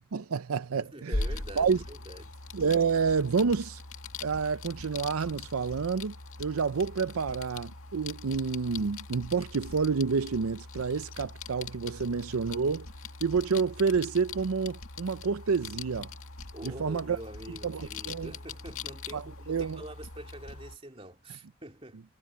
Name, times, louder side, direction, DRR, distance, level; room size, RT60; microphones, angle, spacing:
voice 1, 0.0-1.2 1.6-1.8 2.5-3.8 4.2-12.9 13.2-16.1 16.6-17.2 17.6-18.3 19.1-19.8, right 5 dB, 85° right, 0.6 m, -29 dB
voice 2, 0.8-2.3 16.5-22.0, right 1 dB, 25° right, 2.7 m, -45 dB
sound 1, 1.1-20.8, left 3 dB, 80° left, 2.1 m, -41 dB
head